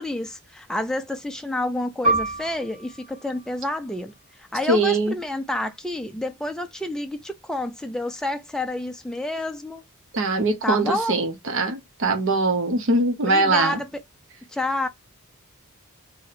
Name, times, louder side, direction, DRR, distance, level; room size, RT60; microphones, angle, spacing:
voice 1, 0.0-9.8 10.6-11.2 13.2-13.9 14.5-14.9, left 1 dB, 5° left, 0.3 m, -29 dB
Piano, 2.0-7.1 7.4-7.6 8.4-8.7, right 2 dB, 30° right, 0.9 m, -30 dB
voice 2, 4.7-5.2 10.1-13.8, right 2 dB, 65° right, 0.7 m, -22 dB
2.7 x 2.1 x 4.0 m
head